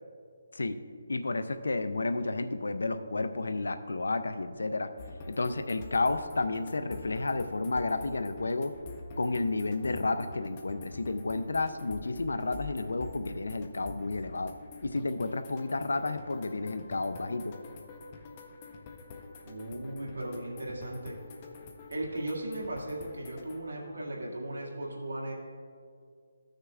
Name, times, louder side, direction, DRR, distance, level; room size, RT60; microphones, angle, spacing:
voice 1, 1.1-4.9 5.3-8.7 9.2-14.5 14.8-17.6, left 3 dB, 85° left, 10 dB, 0.4 m, -31 dB
sound 1, 5.0-23.6, left 3 dB, 30° left, 0.7 m, -46 dB
voice 2, 19.4-21.2 21.9-25.3, right 1 dB, 80° right, -2 dB, 2.0 m, -37 dB
14.5 x 6.4 x 2.4 m, 2.2 s
hypercardioid pair, 165°, 0 cm